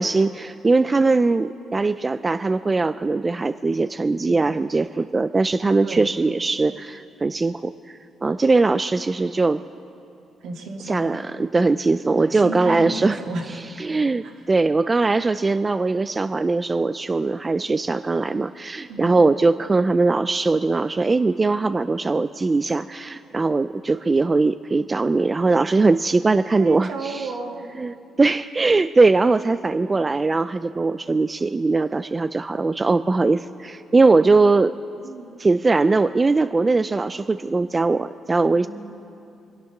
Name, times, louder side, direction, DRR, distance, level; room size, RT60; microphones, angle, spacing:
voice 1, 0.0-9.6 10.9-13.2 13.8-27.3 27.8-34.7 35.4-38.7, right 3 dB, 25° right, 12 dB, 0.3 m, -20 dB
voice 2, 10.4-11.1 12.1-13.7 14.2-14.4 18.9-19.1 26.6-27.7 35.0-35.4, right 2 dB, 75° right, 1 dB, 2.1 m, -32 dB
25.0 x 9.0 x 5.9 m, 2.7 s
cardioid pair, 90°, 0 cm